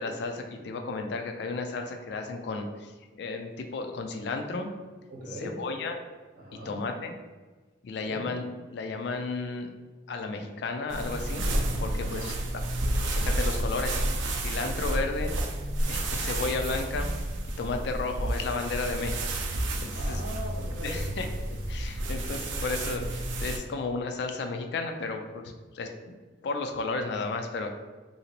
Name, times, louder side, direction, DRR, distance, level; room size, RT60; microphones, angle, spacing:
voice 1, 0.0-4.7 5.4-6.0 6.6-7.1 7.8-9.7 10.1-11.4 11.8-12.6 13.1-14.0 14.4-15.3 15.9-17.1 17.6-20.2 20.8-25.4 25.7-26.2 26.4-27.7, left 3 dB, 65° left, 5 dB, 0.3 m, -33 dB
voice 2, 5.1-5.5 6.3-6.8 8.0-8.2 12.2-12.3 19.9-20.9, equal, 55° right, -5 dB, 1.1 m, -40 dB
sound 1, 10.9-23.6, right 1 dB, 85° right, 0.4 m, -30 dB
2.8 x 2.7 x 2.9 m, 1.3 s
head